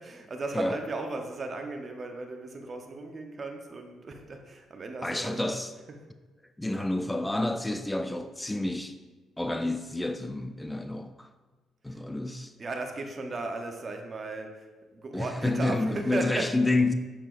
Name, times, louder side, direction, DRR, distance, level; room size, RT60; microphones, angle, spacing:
voice 1, 0.0-5.5 11.9-12.0 12.6-14.7 14.9-16.5, right 3 dB, 40° right, 4 dB, 0.8 m, -36 dB
voice 2, 5.0-5.7 6.6-9.0 9.4-11.3 11.8-12.5 15.1-16.9, left 2 dB, 10° left, 8 dB, 0.3 m, -29 dB
6.8 x 5.6 x 2.5 m, 1.3 s
cardioid pair, 90°, 0 cm